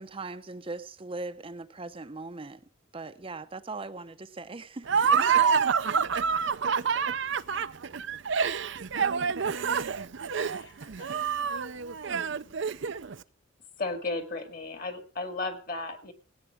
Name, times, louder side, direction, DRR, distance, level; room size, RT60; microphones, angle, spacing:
voice 1, 0.0-2.6 2.9-5.2, right 3 dB, 30° right, 0.7 m, -40 dB
Laughter, 4.9-13.1, right 6 dB, 65° right, 0.6 m, -27 dB
voice 2, 7.4-8.8 9.7-11.1, left 6 dB, 65° left, 2.3 m, -63 dB
voice 3, 13.8-16.1, left 3 dB, 45° left, 2.2 m, -34 dB
17.0 x 8.9 x 5.8 m
head